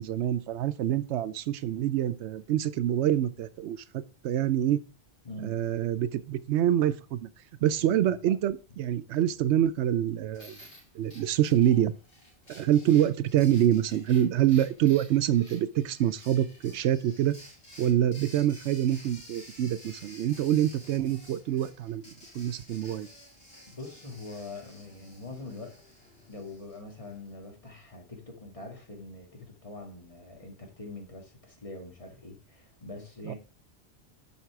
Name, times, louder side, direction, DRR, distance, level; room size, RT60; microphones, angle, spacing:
voice 1, 0.0-4.8 5.4-7.3 7.6-10.6 10.9-11.9 12.5-17.3 17.8-23.1 33.2-33.3, right 11 dB, 85° right, 0.9 m, -26 dB
voice 2, 5.2-5.6 7.8-8.2 23.7-25.8 26.3-33.3, left 2 dB, 30° left, 1.9 m, -43 dB
sound 1, 10.3-27.3, equal, 85° left, 3.8 m, -52 dB
7.2 x 5.9 x 4.7 m
omnidirectional pair, 1.1 m